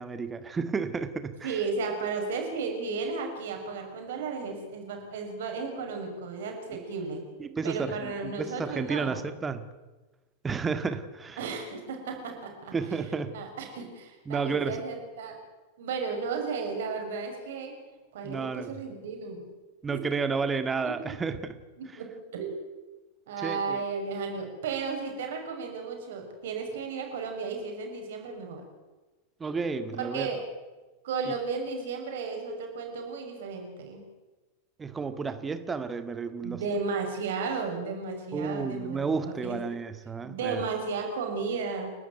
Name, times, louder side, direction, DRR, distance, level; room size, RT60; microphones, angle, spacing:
voice 1, 0.0-1.6 7.4-9.6 10.4-11.4 12.7-13.4 14.3-14.8 18.2-18.7 19.8-21.5 23.4-23.8 29.4-30.3 34.8-36.6 38.3-40.7, right 4 dB, 15° right, 10 dB, 1.9 m, -31 dB
voice 2, 1.4-7.3 7.6-9.2 11.4-12.8 13.3-15.4 15.8-17.8 18.1-19.5 20.8-21.0 21.8-22.7 23.3-28.6 30.0-30.5 31.0-34.1 36.4-39.6 40.2-41.9, right 4 dB, 55° right, 3 dB, 6.0 m, -34 dB
30.0 x 12.5 x 9.4 m, 1.2 s
figure-of-eight pair, 90°, 0 cm